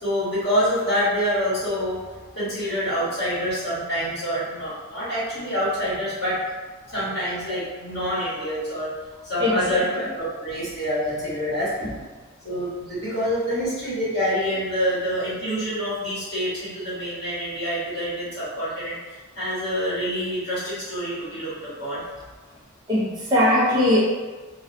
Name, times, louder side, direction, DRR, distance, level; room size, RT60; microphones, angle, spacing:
voice 1, 0.0-6.4 6.8-8.9 9.2-11.9 12.4-22.0, equal, 50° left, -12 dB, 1.3 m, -26 dB
voice 2, 9.4-9.8 22.9-24.0, left 1 dB, 20° right, -8 dB, 0.5 m, -20 dB
2.5 x 2.2 x 2.6 m, 1.3 s
head